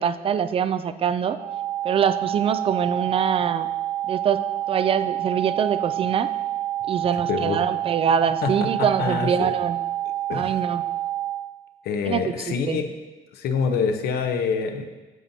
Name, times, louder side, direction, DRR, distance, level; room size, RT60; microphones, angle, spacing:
voice 1, 0.0-1.4 1.8-3.7 4.1-4.4 4.7-6.3 6.9-9.8 10.3-10.8 12.0-12.8, right 7 dB, 35° right, 12 dB, 0.4 m, -24 dB
sound 1, 1.4-11.4, right 13 dB, 75° right, 2.0 m, -28 dB
voice 2, 7.3-7.6 8.4-9.5 10.3-10.6 11.8-12.9 13.3-14.8, left 5 dB, 70° left, 5 dB, 0.8 m, -26 dB
9.2 x 7.3 x 2.7 m, 1.2 s
cardioid pair, 110°, 17 cm